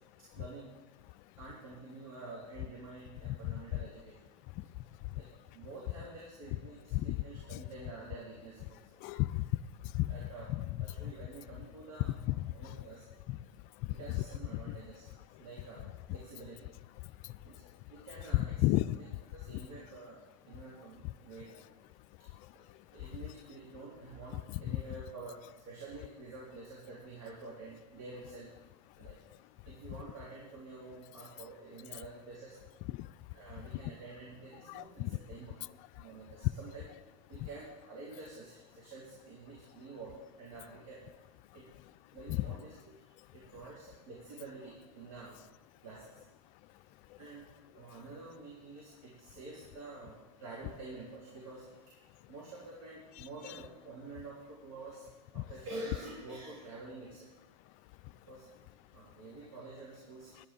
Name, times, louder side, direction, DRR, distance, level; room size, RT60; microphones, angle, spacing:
voice 1, 0.3-0.7 1.4-4.1 5.2-5.3 5.5-8.8 10.1-10.5 10.8-12.1 12.5-13.0 13.9-15.1 15.4-16.7 17.4-17.6 17.9-18.7 18.9-19.0 19.3-21.6 22.9-25.3 25.7-28.5 29.0-29.2 29.7-32.6 33.3-35.5 36.0-36.9 37.3-41.0 41.5-41.7 42.1-42.7 43.3-45.4 45.8-46.0 47.2-47.4 47.7-51.9 52.3-55.1 55.3-57.2 58.3-58.4 58.9-60.5, right 3 dB, 75° right, -5 dB, 3.6 m, -48 dB
voice 2, 9.0-9.5 9.9-11.1 12.0-12.9 13.3-13.4 13.8-14.2 14.5-14.8 18.3-19.0 19.5-19.7 21.0-21.1 23.2-23.3 24.3-24.8 32.9-33.1 34.7-35.2 37.4-37.5 42.3-42.5 53.2-53.6 55.4-55.5 60.4-60.5, left 17 dB, 45° left, 11 dB, 0.4 m, -34 dB
10.5 x 9.9 x 5.2 m, 1.1 s
hypercardioid pair, 115°, 17 cm